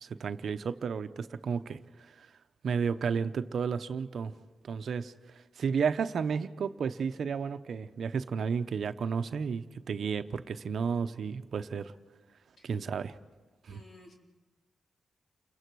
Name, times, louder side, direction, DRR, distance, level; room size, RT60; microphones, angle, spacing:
voice 1, 0.0-1.8 2.2-2.3 2.6-4.3 4.6-5.1 5.6-11.9 12.6-13.2 13.7-13.8, right 6 dB, 65° right, 10 dB, 0.8 m, -32 dB
voice 2, 13.7-14.1, left 2 dB, 60° left, 0 dB, 4.4 m, -55 dB
29.5 x 22.0 x 4.7 m, 1.2 s
cardioid pair, 80°, 0 cm